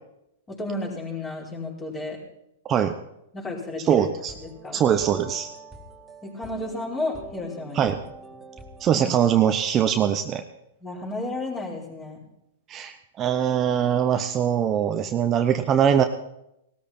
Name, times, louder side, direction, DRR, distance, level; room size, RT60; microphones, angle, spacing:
voice 1, 0.5-2.2 3.3-4.1 4.4-4.8 6.2-7.9 10.8-12.2, left 2 dB, 20° left, -2 dB, 4.6 m, -32 dB
voice 2, 3.8-4.3 4.7-5.5 7.7-8.0 8.8-10.4 12.7-16.0, right 9 dB, 30° right, 7 dB, 0.8 m, -22 dB
sound 1, 4.2-9.3, right 2 dB, 10° right, 2.0 m, -45 dB
18.0 x 13.5 x 4.4 m, 0.82 s
hypercardioid pair, 125°, 0 cm